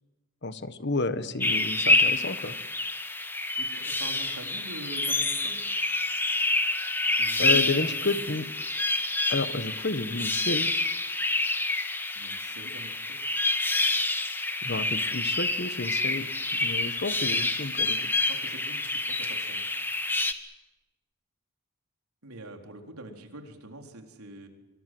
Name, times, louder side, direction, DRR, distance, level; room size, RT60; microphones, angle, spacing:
voice 1, 0.4-2.5 7.4-8.5 9.3-10.7 14.6-16.3 16.6-18.1, left 3 dB, 50° left, 12 dB, 1.3 m, -31 dB
sound 1, 1.4-20.3, left 2 dB, 10° left, 1.4 m, -28 dB
voice 2, 3.6-5.6 7.2-7.9 12.1-13.2 18.3-19.6 22.2-24.5, right 1 dB, 85° right, 4 dB, 4.1 m, -44 dB
25.5 x 24.5 x 7.8 m, 1.1 s
head